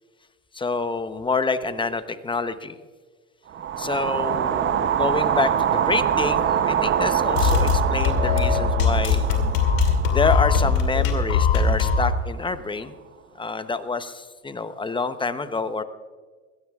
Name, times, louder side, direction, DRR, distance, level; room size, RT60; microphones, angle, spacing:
voice 1, 0.5-2.8 3.8-9.3 10.1-12.9 13.4-15.8, left 4 dB, 15° left, 11 dB, 0.8 m, -27 dB
sound 1, 3.5-11.7, right 9 dB, 30° right, 0.8 m, -25 dB
sound 2, 7.3-12.2, left 5 dB, 80° left, 2.7 m, -21 dB
22.5 x 16.5 x 2.4 m, 1.5 s
supercardioid pair, 100°, 38 cm